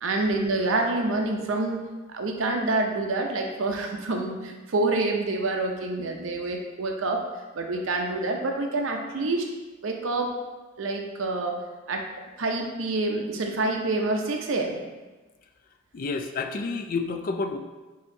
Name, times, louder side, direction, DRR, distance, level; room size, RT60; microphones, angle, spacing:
voice 1, 0.0-7.2 7.5-9.5 9.8-10.3 10.8-11.6 11.9-12.1 12.4-14.8, right 2 dB, 75° right, 2 dB, 0.6 m, -27 dB
voice 2, 15.9-17.6, left 4 dB, 45° left, 6 dB, 0.4 m, -29 dB
6.4 x 2.8 x 2.7 m, 1.2 s
head